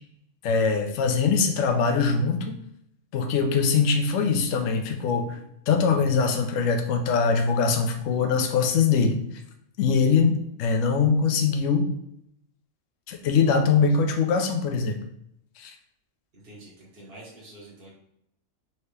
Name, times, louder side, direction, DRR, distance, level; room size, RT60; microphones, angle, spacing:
voice 1, 0.4-2.6 3.1-9.2 9.8-11.9 13.1-15.0 15.6-15.7, left 5 dB, 70° left, 5 dB, 1.0 m, -22 dB
voice 2, 16.4-17.9, right 1 dB, 50° right, -6 dB, 1.4 m, -46 dB
4.3 x 2.8 x 3.3 m, 0.75 s
omnidirectional pair, 1.4 m